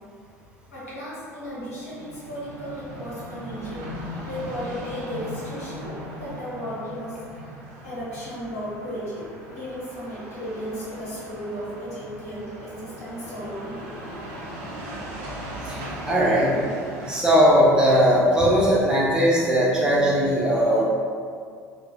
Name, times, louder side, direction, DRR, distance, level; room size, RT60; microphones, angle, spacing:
voice 1, 0.7-3.8 4.3-7.4 7.8-13.8 14.8-15.2, equal, 75° left, -9 dB, 1.0 m, -35 dB
sound 1, 1.6-17.2, equal, 55° right, 0.5 m, -38 dB
voice 2, 15.6-16.6 17.1-20.8, equal, 10° right, -7 dB, 0.7 m, -19 dB
3.3 x 2.3 x 2.2 m, 2.2 s
figure-of-eight pair, 65°, 8 cm